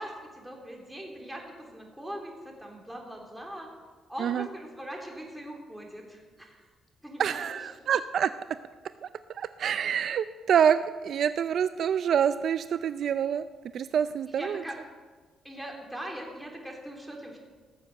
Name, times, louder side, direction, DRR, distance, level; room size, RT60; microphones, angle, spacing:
voice 1, 0.0-3.7 4.1-6.6 7.0-7.6 14.3-14.8 15.4-17.4, equal, 5° right, 0 dB, 3.5 m, -41 dB
voice 2, 7.2-8.3 9.0-9.1 9.3-10.8 11.0-13.5 13.7-14.6, right 8 dB, 65° right, 13 dB, 0.4 m, -26 dB
16.5 x 7.2 x 7.7 m, 1.4 s
cardioid pair, 90°, 0 cm